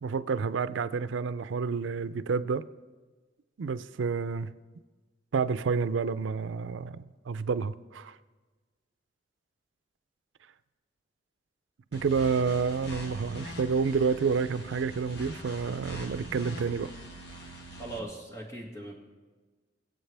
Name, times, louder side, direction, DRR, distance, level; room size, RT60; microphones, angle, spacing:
voice 1, 0.0-2.6 3.6-4.5 5.3-8.1 11.9-16.9, right 5 dB, 90° right, 14 dB, 0.4 m, -29 dB
sound 1, 11.9-18.0, right 1 dB, 60° left, 1.5 m, -43 dB
voice 2, 17.8-18.9, right 2 dB, 15° left, -1 dB, 1.9 m, -39 dB
22.5 x 8.0 x 3.4 m, 1.3 s
head